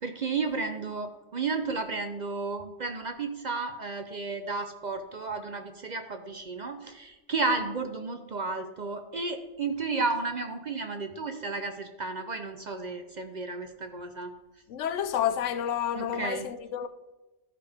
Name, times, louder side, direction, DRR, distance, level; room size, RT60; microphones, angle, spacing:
voice 1, 0.0-14.3 15.9-16.5, right 3 dB, 50° right, 0.5 m, -33 dB
voice 2, 14.7-16.9, left 9 dB, 80° left, 0.9 m, -30 dB
13.5 x 5.0 x 3.4 m
omnidirectional pair, 1.2 m